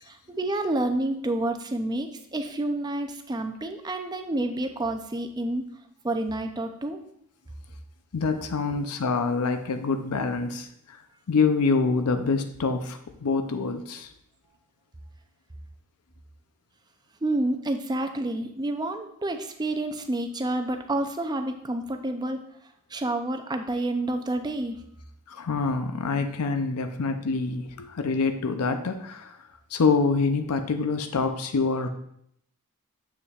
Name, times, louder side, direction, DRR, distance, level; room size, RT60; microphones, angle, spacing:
voice 1, 0.0-5.7 6.0-7.0 17.2-24.8, right 2 dB, 20° right, 6 dB, 0.5 m, -29 dB
voice 2, 8.1-11.0 11.3-14.1 25.3-29.4 29.7-31.9, left 4 dB, 85° left, 8 dB, 0.6 m, -26 dB
7.2 x 6.8 x 2.4 m, 0.72 s
head